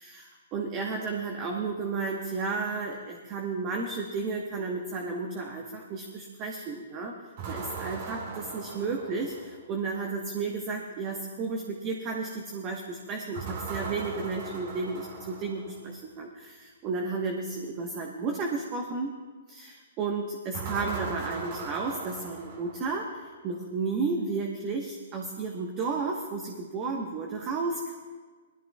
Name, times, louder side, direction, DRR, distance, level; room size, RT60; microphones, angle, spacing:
voice 1, 0.0-7.1 7.5-19.1 19.5-27.9, right 4 dB, 30° right, 1 dB, 1.2 m, -33 dB
sound 1, 7.4-9.7 13.3-15.9 20.5-23.1, right 4 dB, 45° right, 2.1 m, -38 dB
19.5 x 14.0 x 2.4 m, 1.5 s
hypercardioid pair, 130°, 0 cm